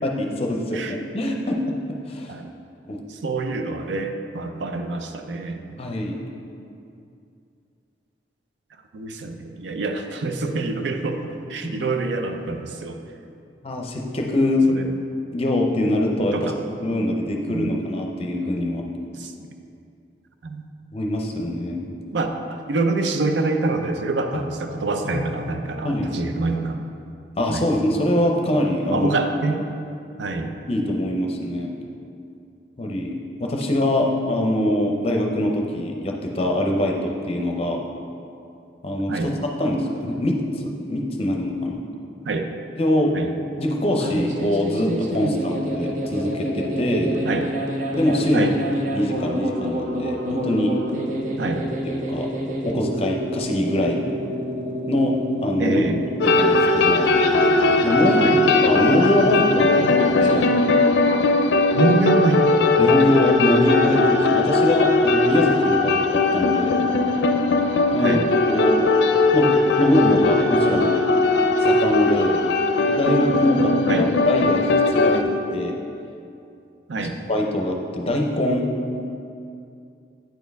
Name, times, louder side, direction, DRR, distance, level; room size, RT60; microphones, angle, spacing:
voice 1, 0.0-1.6 2.1-2.3 2.9-3.0 5.8-6.2 13.6-14.7 15.3-16.5 16.8-18.8 20.9-21.9 25.0-25.3 25.8-26.1 27.4-29.1 30.7-31.7 32.8-37.8 38.8-41.8 42.8-43.2 43.6-47.2 48.0-50.7 51.8-52.3 52.6-54.0 54.9-55.2 55.4-55.8 56.2-57.1 57.8-58.2 58.5-59.9 60.2-60.5 62.8-66.7 67.9-68.8 69.3-71.0 71.6-72.4 72.8-75.8 77.3-78.7, left 1 dB, 35° left, 1 dB, 0.6 m, -23 dB
voice 2, 3.1-5.6 8.9-13.0 14.7-14.9 16.3-16.6 17.5-17.7 19.2-19.3 20.4-20.6 22.1-26.8 27.5-27.6 28.9-29.6 30.2-30.5 39.1-39.3 42.2-42.5 43.1-43.3 45.2-45.3 47.2-47.4 48.3-48.5 51.4-51.6 55.6-56.0 58.2-58.4 61.7-62.6 68.0-68.3 73.9-74.1 76.9-77.2, right 3 dB, 85° right, 6 dB, 0.5 m, -26 dB
sound 1, 43.9-60.4, right 1 dB, 45° right, 0.6 m, -29 dB
sound 2, 56.2-75.2, left 3 dB, 75° left, 0.4 m, -19 dB
9.1 x 4.4 x 3.4 m, 2.5 s
head